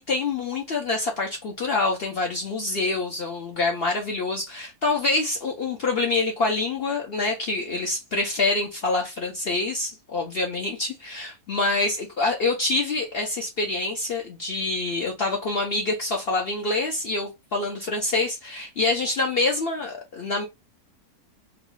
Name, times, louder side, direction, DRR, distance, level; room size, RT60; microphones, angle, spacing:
voice 1, 0.0-20.4, left 3 dB, 60° left, 0.6 m, -26 dB
2.9 x 2.3 x 3.1 m
omnidirectional pair, 1.6 m